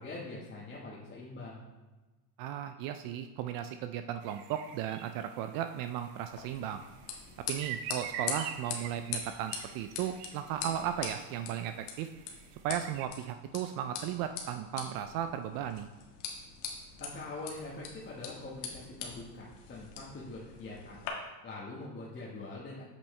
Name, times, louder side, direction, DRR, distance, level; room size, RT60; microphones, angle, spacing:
voice 1, 0.0-1.7 17.0-21.1 21.4-22.8, left 2 dB, 20° left, -6 dB, 1.3 m, -43 dB
voice 2, 2.4-6.8 7.5-12.1 12.6-15.9, right 10 dB, 50° right, 8 dB, 0.4 m, -36 dB
sound 1, 4.2-13.1, right 8 dB, 80° right, 0.8 m, -46 dB
sound 2, 6.3-21.1, left 6 dB, 75° left, 1.7 m, -43 dB
8.4 x 6.0 x 3.2 m, 1.2 s
supercardioid pair, 120°, 48 cm